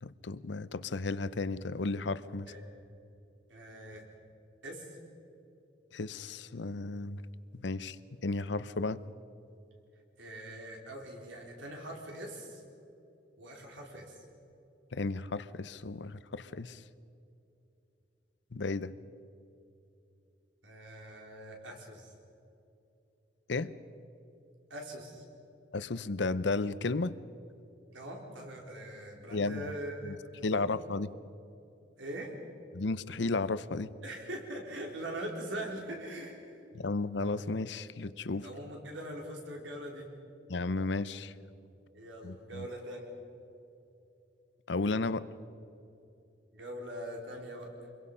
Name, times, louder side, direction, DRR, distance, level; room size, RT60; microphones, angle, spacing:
voice 1, 0.0-2.5 5.9-7.2 7.5-8.0 8.2-9.0 14.9-16.8 18.5-18.9 23.5-23.7 25.7-27.2 29.3-29.7 30.0-30.2 30.4-31.1 32.7-33.9 36.7-38.5 40.5-41.3 42.2-42.7 44.7-45.3, left 3 dB, 75° left, 15 dB, 0.7 m, -33 dB
voice 2, 3.5-4.0 4.6-4.9 10.2-12.6 13.4-14.2 20.6-22.1 24.7-25.2 27.9-30.7 32.0-32.3 34.0-36.6 38.4-40.1 41.9-43.1 46.5-47.7, right 1 dB, 85° right, 0 dB, 4.4 m, -42 dB
27.0 x 22.0 x 5.7 m, 2.8 s
head